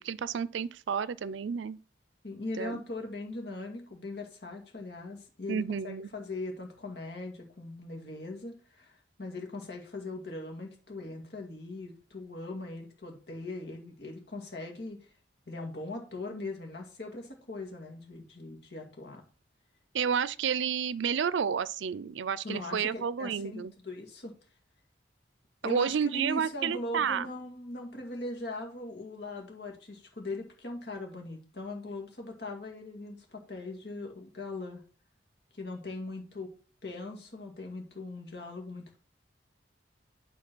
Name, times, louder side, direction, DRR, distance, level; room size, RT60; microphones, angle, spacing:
voice 1, 0.0-1.8 2.6-2.8 5.5-6.1 19.9-23.7 25.6-27.3, right 7 dB, 85° right, 0.4 m, -31 dB
voice 2, 2.2-15.1 15.5-19.2 22.4-24.3 25.6-34.8 35.5-36.5 36.8-39.0, left 2 dB, 65° left, 2.2 m, -40 dB
9.7 x 3.7 x 6.0 m
head